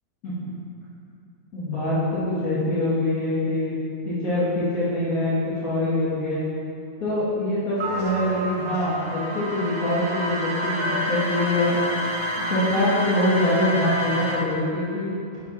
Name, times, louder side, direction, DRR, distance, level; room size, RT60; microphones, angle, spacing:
voice 1, 1.5-3.8 4.0-6.5 7.0-12.1 12.5-15.1, left 1 dB, 65° left, -10 dB, 1.8 m, -24 dB
sound 1, 7.8-14.4, equal, 70° right, 1.8 m, -28 dB
6.9 x 5.8 x 3.7 m, 2.6 s
omnidirectional pair, 1.6 m